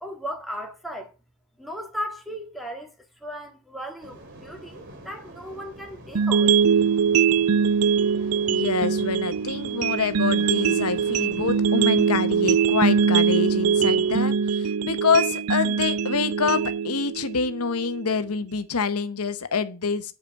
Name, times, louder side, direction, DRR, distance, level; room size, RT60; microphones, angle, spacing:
voice 1, 0.0-1.1 1.6-2.9 3.2-6.6, equal, ahead, 1.8 m, -36 dB
sound 1, 4.0-14.3, right 1 dB, 55° right, 3.0 m, -45 dB
sound 2, 6.1-18.2, right 6 dB, 85° right, 0.5 m, -22 dB
voice 2, 8.5-20.1, left 5 dB, 85° left, 1.0 m, -26 dB
8.3 x 5.0 x 6.9 m
head